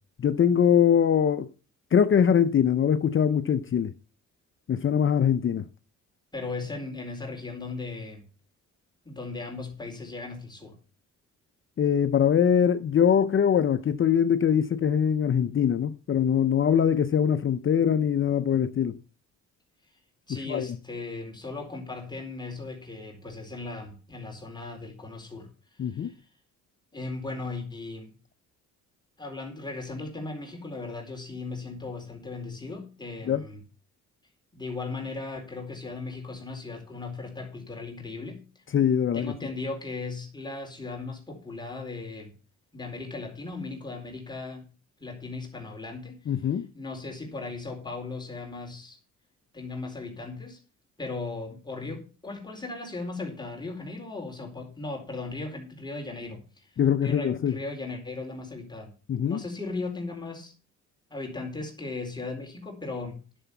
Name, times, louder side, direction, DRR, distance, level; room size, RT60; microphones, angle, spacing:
voice 1, 0.2-1.5 1.9-3.9 4.7-5.6 11.8-19.0 20.5-20.7 25.8-26.1 33.3-33.4 38.7-39.3 46.3-46.7 56.8-57.5 59.1-59.4, left 8 dB, 40° left, 0.7 m, -22 dB
voice 2, 6.3-8.2 9.0-10.8 20.3-26.1 26.9-28.1 29.2-33.6 34.5-38.4 39.1-42.3 42.7-44.6 45.0-49.0 49.5-50.6 51.0-56.7 57.0-58.9 59.2-60.5 61.1-63.2, left 3 dB, 15° left, 4.4 m, -37 dB
11.5 x 7.1 x 6.9 m
cardioid pair, 90°, 30 cm